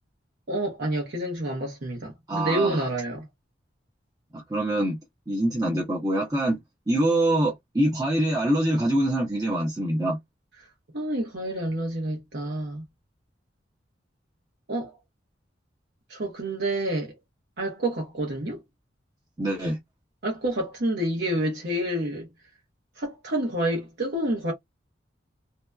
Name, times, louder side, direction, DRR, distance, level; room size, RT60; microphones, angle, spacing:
voice 1, 0.5-3.3 7.3-7.4 10.9-12.8 14.7-14.9 16.1-17.1 17.6-18.6 20.2-22.3 23.0-24.5, right 1 dB, 60° right, 0.9 m, -28 dB
voice 2, 2.3-2.8 4.3-5.0 5.3-6.6 6.9-10.2 19.4-19.8, right 1 dB, 20° right, 0.6 m, -24 dB
2.7 x 2.2 x 2.3 m
head